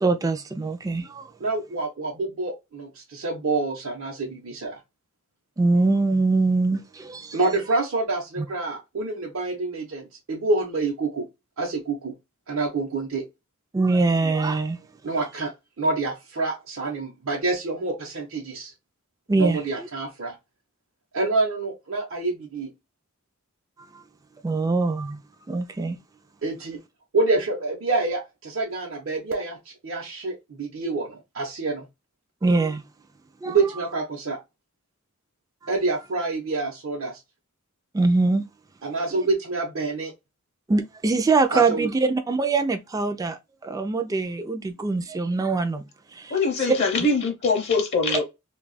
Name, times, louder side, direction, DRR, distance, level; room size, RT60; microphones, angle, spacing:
voice 1, 0.0-1.3 5.6-7.4 8.4-8.5 13.7-14.8 19.3-19.9 23.9-24.0 24.4-25.2 25.5-26.0 32.4-32.8 33.4-33.6 37.9-38.5 39.1-39.3 40.7-45.8 46.1-46.4, right 3 dB, 15° right, 0.3 m, -23 dB
voice 2, 1.4-4.8 7.3-11.3 11.6-12.1 12.5-13.2 15.0-15.5 15.8-18.7 19.4-20.3 21.1-22.7 26.4-26.8 27.1-29.6 29.8-31.8 33.5-34.4 35.7-37.2 38.8-40.1 41.5-41.9, right 3 dB, 70° right, 0.8 m, -27 dB
voice 3, 46.3-48.2, left 3 dB, 50° left, 0.7 m, -23 dB
2.7 x 2.3 x 3.9 m
head